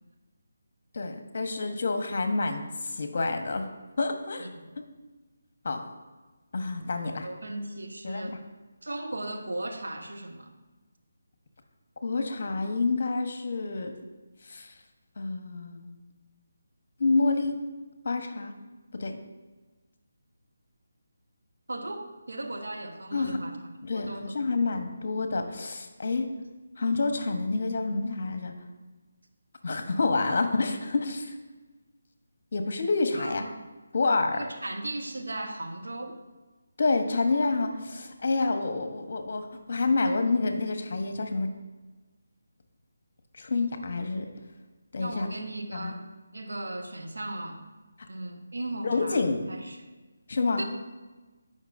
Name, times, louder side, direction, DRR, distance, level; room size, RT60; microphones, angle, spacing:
voice 1, 0.9-3.7 4.0-4.5 5.6-5.8 6.5-7.3 8.0-8.4 12.0-13.9 14.5-14.7 15.2-16.0 17.0-17.6 18.0-18.5 18.9-19.2 23.1-23.4 23.8-26.3 26.8-28.5 29.6-31.4 32.5-33.5 33.9-34.4 36.8-41.5 43.4-44.3 44.9-45.3 45.7-45.9 48.8-49.5 50.3-50.6, left 3 dB, 55° left, 6 dB, 1.0 m, -28 dB
voice 2, 7.2-8.4 8.8-10.5 21.7-23.6 23.9-24.4 33.1-33.5 34.3-36.2 45.0-46.0 46.3-47.6 48.1-49.2 49.5-49.8 50.6-50.7, right 1 dB, 85° right, 4 dB, 1.1 m, -37 dB
14.0 x 5.4 x 2.6 m, 1.2 s
figure-of-eight pair, 160°, 0 cm